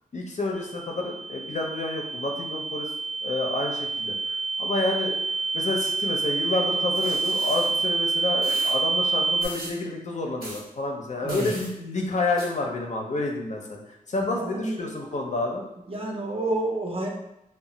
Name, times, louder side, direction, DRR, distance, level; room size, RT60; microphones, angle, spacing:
voice 1, 0.1-2.9 3.2-5.1 5.5-13.8 14.1-15.6, left 2 dB, 55° left, 0 dB, 0.5 m, -29 dB
sound 1, 0.6-9.5, right 3 dB, 5° left, 0.4 m, -27 dB
sound 2, 6.9-7.7 8.4-8.7 9.4-9.8 10.4-10.6 11.3-11.7 12.4-12.5, right 1 dB, 90° right, 0.9 m, -39 dB
voice 2, 14.2-14.9 15.9-17.1, right 2 dB, 40° right, -1 dB, 0.6 m, -29 dB
2.1 x 2.0 x 3.8 m, 0.86 s
cardioid pair, 65°, 15 cm